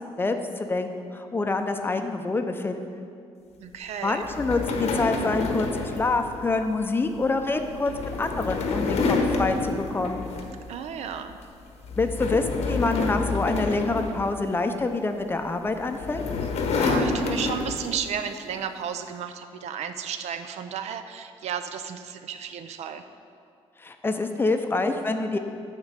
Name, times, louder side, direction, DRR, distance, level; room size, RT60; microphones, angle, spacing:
voice 1, 0.2-3.0 4.0-10.3 12.0-16.2 23.8-25.4, left 3 dB, 20° left, 6 dB, 0.5 m, -26 dB
voice 2, 3.6-4.2 10.7-11.4 16.7-23.0, right 8 dB, 80° right, 9 dB, 0.5 m, -33 dB
sound 1, 4.2-10.8 11.1-11.4 11.8-14.8 15.7-18.1, left 3 dB, 80° left, 0.9 m, -28 dB
9.4 x 3.7 x 6.7 m, 2.4 s
cardioid pair, 135°, 11 cm